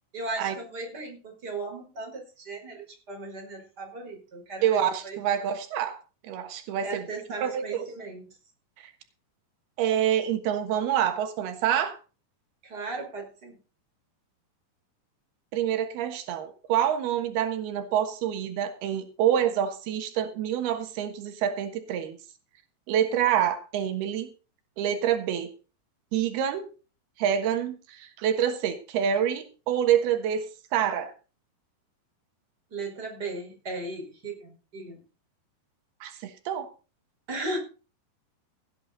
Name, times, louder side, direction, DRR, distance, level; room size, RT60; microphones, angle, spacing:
voice 1, 0.1-5.3 6.8-8.3 12.6-13.6 32.7-35.0 37.3-37.6, right 2 dB, 25° right, 2 dB, 5.3 m, -37 dB
voice 2, 4.6-6.0 6.2-7.0 7.4-7.9 8.8-8.9 9.8-12.0 15.5-22.2 22.9-24.3 24.8-25.5 26.1-26.7 27.2-30.5 30.7-31.1 36.0-36.7, right 9 dB, 90° right, 8 dB, 3.5 m, -27 dB
17.0 x 10.0 x 4.1 m, 0.34 s
omnidirectional pair, 4.4 m